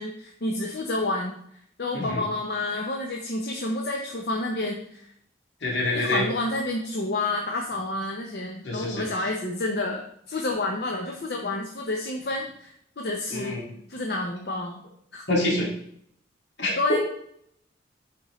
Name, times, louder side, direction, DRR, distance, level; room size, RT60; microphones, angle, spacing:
voice 1, 0.0-1.3 1.8-5.1 5.9-13.6 13.9-14.8 15.1-15.3 16.8-17.0, left 2 dB, 60° left, 1 dB, 0.7 m, -29 dB
voice 2, 5.6-6.3 8.6-9.0 13.3-13.6 15.3-15.7 16.6-17.0, left 1 dB, 80° left, -3 dB, 2.2 m, -26 dB
8.6 x 4.2 x 3.1 m, 0.70 s
head